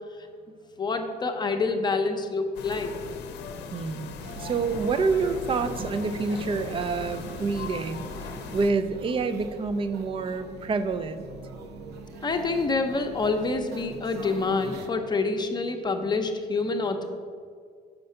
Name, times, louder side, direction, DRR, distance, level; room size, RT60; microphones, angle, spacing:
voice 1, 0.8-3.0 12.2-17.1, left 3 dB, 25° left, 5 dB, 0.7 m, -27 dB
sound 1, 2.5-8.7, left 5 dB, 85° left, 0.6 m, -39 dB
voice 2, 3.7-8.1 8.5-11.2, right 4 dB, 30° right, 11 dB, 0.5 m, -27 dB
sound 2, 4.2-14.9, right 3 dB, 75° right, 0.7 m, -42 dB
5.9 x 5.3 x 6.5 m, 2.1 s
cardioid pair, 110°, 17 cm